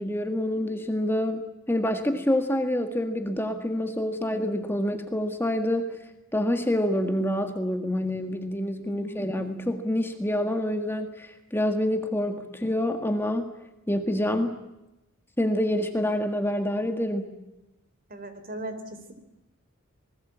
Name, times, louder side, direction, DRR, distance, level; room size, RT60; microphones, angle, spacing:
voice 1, 0.0-5.8 6.3-13.5 13.9-14.6 15.4-17.3, left 1 dB, 10° left, 6 dB, 1.7 m, -27 dB
voice 2, 8.8-9.2 18.1-19.1, right 1 dB, 45° right, 9 dB, 3.8 m, -38 dB
27.0 x 21.0 x 8.6 m, 0.93 s
head